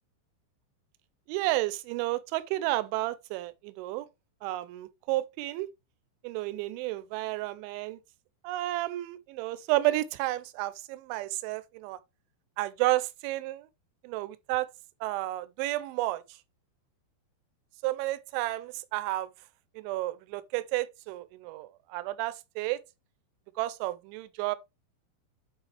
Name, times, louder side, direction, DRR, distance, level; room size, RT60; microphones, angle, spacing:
voice 1, 1.3-4.1 4.4-5.7 6.2-8.0 8.4-12.0 12.6-13.7 14.0-14.7 15.0-16.2 17.8-19.3 19.8-22.8 23.6-24.6, right 17 dB, 80° right, 3.0 m, -31 dB
8.9 x 4.8 x 3.4 m
omnidirectional pair, 5.5 m